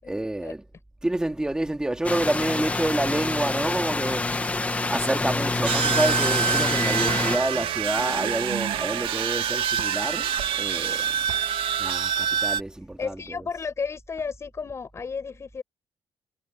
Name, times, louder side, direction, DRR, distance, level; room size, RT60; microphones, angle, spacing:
voice 1, 0.1-0.7 1.0-11.4 11.8-13.5, right 1 dB, 10° right, 2.2 m, -28 dB
sound 1, 2.0-7.4, left 3 dB, 15° left, 1.3 m, -27 dB
sound 2, 5.6-12.6, right 8 dB, 85° right, 1.7 m, -26 dB
voice 2, 13.0-15.6, left 5 dB, 30° left, 6.4 m, -33 dB
cardioid pair, 150°, 9 cm